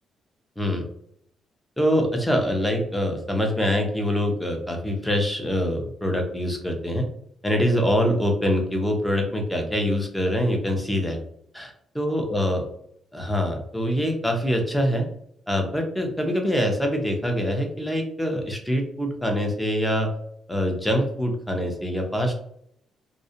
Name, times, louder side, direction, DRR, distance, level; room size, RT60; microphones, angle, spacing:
voice 1, 1.8-7.1 7.4-11.2 11.5-11.7 12.0-12.6 13.1-15.1 15.5-20.1 20.5-22.3, equal, 5° left, 2 dB, 0.6 m, -24 dB
2.4 x 2.0 x 2.7 m, 0.69 s
cardioid pair, 90°, 0 cm